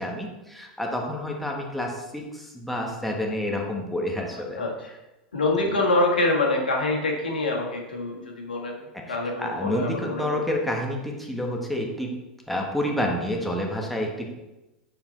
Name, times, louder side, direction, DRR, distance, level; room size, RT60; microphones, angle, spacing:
voice 1, 0.0-4.6 9.4-12.1 12.5-14.3, left 1 dB, ahead, -1 dB, 1.6 m, -29 dB
voice 2, 4.3-4.9 5.3-8.8 9.1-10.5, left 2 dB, 80° left, 0 dB, 1.5 m, -26 dB
8.7 x 4.5 x 3.9 m, 1.0 s
figure-of-eight pair, 90°, 5 cm